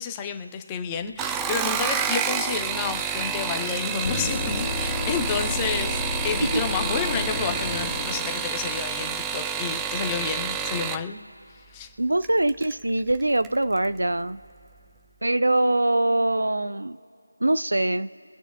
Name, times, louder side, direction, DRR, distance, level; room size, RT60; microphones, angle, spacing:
voice 1, 0.0-11.2 11.5-11.9, left 6 dB, 15° left, 5 dB, 0.8 m, -30 dB
sound 1, 1.1-11.0 12.2-12.7 13.1-13.6 13.8-13.9, right 7 dB, 10° right, 0.3 m, -29 dB
sound 2, 4.0-9.1 13.1-13.2, left 2 dB, 40° left, 2.8 m, -31 dB
voice 2, 12.0-14.4 15.2-17.0 17.4-18.1, right 1 dB, 70° right, 12 dB, 0.6 m, -23 dB
24.0 x 9.0 x 2.4 m, 3.0 s
figure-of-eight pair, 160°, 0 cm